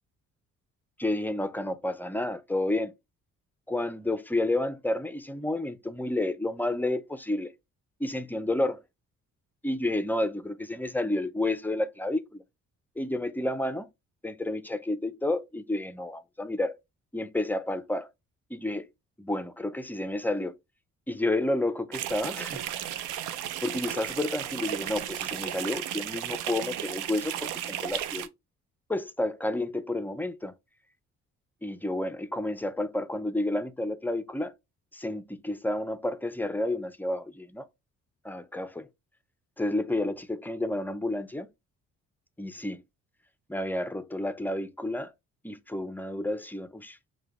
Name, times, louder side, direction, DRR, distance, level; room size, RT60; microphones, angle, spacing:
voice 1, 1.0-2.9 3.7-7.5 8.0-8.8 9.6-12.4 13.0-13.9 14.2-16.8 17.1-18.1 18.5-18.9 19.2-20.6 21.1-22.7 23.6-28.3 28.9-30.5 31.6-34.5 34.9-37.7 38.2-38.9 39.6-41.5 42.4-42.8 43.5-45.1 45.4-47.0, left 1 dB, 5° left, 0.3 m, -30 dB
sound 1, 21.9-28.3, right 11 dB, 90° right, 0.5 m, -34 dB
4.7 x 2.2 x 2.9 m
cardioid pair, 90°, 30 cm